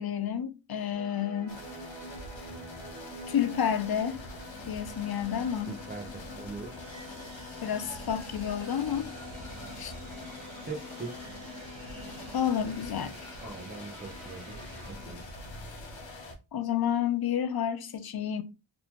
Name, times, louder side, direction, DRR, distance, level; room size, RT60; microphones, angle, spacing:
voice 1, 0.0-1.6 3.3-4.2 4.7-5.8 7.6-9.1 9.8-9.9 12.3-13.5 16.5-18.4, left 9 dB, 55° left, 0.6 m, -30 dB
sound 1, 0.9-14.9, right 2 dB, 85° right, 1.4 m, -48 dB
sound 2, 1.5-16.3, left 2 dB, 75° left, 0.9 m, -44 dB
voice 2, 5.7-6.8 10.6-11.2 13.4-15.3, right 3 dB, 20° right, 0.8 m, -41 dB
3.5 x 2.4 x 3.0 m
wide cardioid pair, 75°, 46 cm